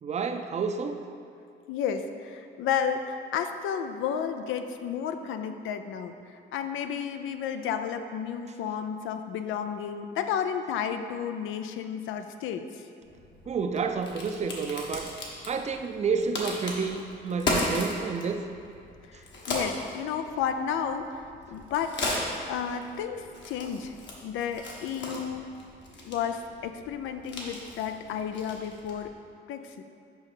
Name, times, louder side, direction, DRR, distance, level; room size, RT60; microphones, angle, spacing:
voice 1, 0.0-1.1 13.5-15.1 15.5-18.4, right 5 dB, 35° right, 7 dB, 0.5 m, -30 dB
voice 2, 1.7-12.8 19.1-21.9 22.5-23.9 24.2-25.5 26.0-29.1 29.5-29.8, left 7 dB, 85° left, 8 dB, 0.5 m, -32 dB
Crack, 13.0-29.1, left 2 dB, 65° left, 1.4 m, -37 dB
6.2 x 5.3 x 4.9 m, 2.4 s
cardioid pair, 90°, 20 cm